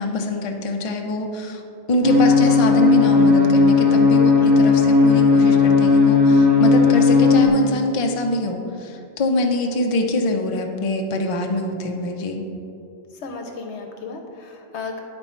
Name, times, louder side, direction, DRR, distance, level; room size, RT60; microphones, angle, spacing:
voice 1, 0.0-1.6 1.9-12.4, left 2 dB, 40° left, 3 dB, 0.5 m, -23 dB
sound 1, 2.0-7.5, left 4 dB, 20° right, 1.3 m, -15 dB
voice 2, 4.4-4.8 13.1-15.0, left 4 dB, 75° left, 3 dB, 1.0 m, -34 dB
10.5 x 4.3 x 4.3 m, 2.7 s
omnidirectional pair, 1.2 m